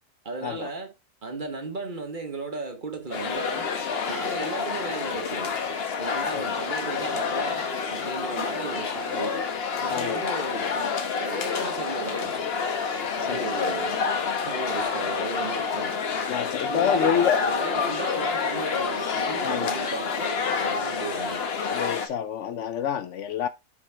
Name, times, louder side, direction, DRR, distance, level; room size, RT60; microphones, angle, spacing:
voice 1, 0.2-0.9 1.2-3.7 4.1-5.6 6.0-9.5 9.8-12.4 13.2-14.0 14.4-16.0 16.7-21.6, right 3 dB, 40° right, 1.1 m, -35 dB
sound 1, 3.1-22.1, left 5 dB, 50° left, 1.1 m, -28 dB
voice 2, 9.9-10.2 13.2-13.5 15.5-15.6 16.3-17.4 19.4-19.7 21.7-23.5, left 9 dB, 70° left, 0.9 m, -27 dB
6.8 x 4.8 x 3.3 m
omnidirectional pair, 1.4 m